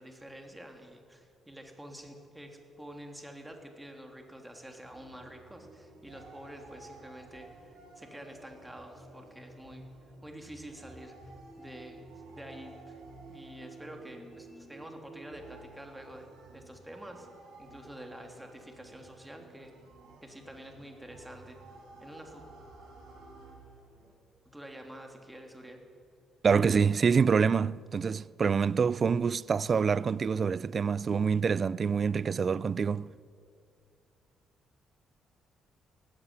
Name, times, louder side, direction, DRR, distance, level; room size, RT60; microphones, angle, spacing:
voice 1, 0.0-9.9 10.2-11.1 11.6-12.0 12.3-13.0 13.3-17.3 17.6-19.7 20.2-21.6 22.0-22.4 24.5-25.8, right 1 dB, 10° right, 3.3 m, -48 dB
sound 1, 4.8-24.1, right 3 dB, 90° right, 6.2 m, -55 dB
sound 2, 8.8-15.5, right 2 dB, 15° left, 1.4 m, -52 dB
voice 2, 26.4-33.1, right 6 dB, 45° right, 0.4 m, -26 dB
17.5 x 15.0 x 9.8 m
cardioid pair, 90°, 0 cm